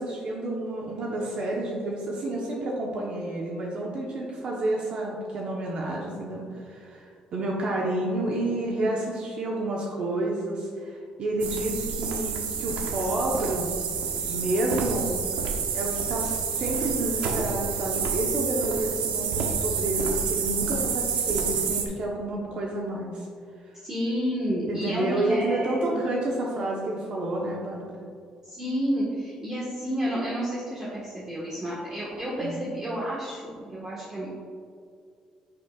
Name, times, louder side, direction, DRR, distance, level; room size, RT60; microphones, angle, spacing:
voice 1, 0.0-13.7 14.3-15.2 15.7-23.3 24.7-27.8 32.4-32.6, right 1 dB, 55° right, -2 dB, 1.1 m, -29 dB
sound 1, 11.4-21.8, right 6 dB, 85° right, 0.9 m, -29 dB
voice 2, 23.8-26.0 28.4-34.3, equal, 25° right, -7 dB, 1.7 m, -30 dB
9.1 x 6.9 x 2.5 m, 2.3 s
cardioid pair, 100°, 2 cm